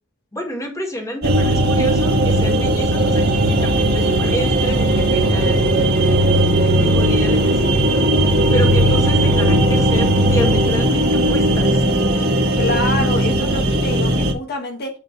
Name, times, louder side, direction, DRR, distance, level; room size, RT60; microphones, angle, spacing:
voice 1, 0.3-5.7 6.0-11.8, equal, 15° left, 2 dB, 1.9 m, -29 dB
sound 1, 1.2-14.3, right 1 dB, 50° right, 1.4 m, -17 dB
voice 2, 12.6-15.0, left 2 dB, 50° left, 2 dB, 1.4 m, -26 dB
9.0 x 3.8 x 4.6 m, 0.33 s
head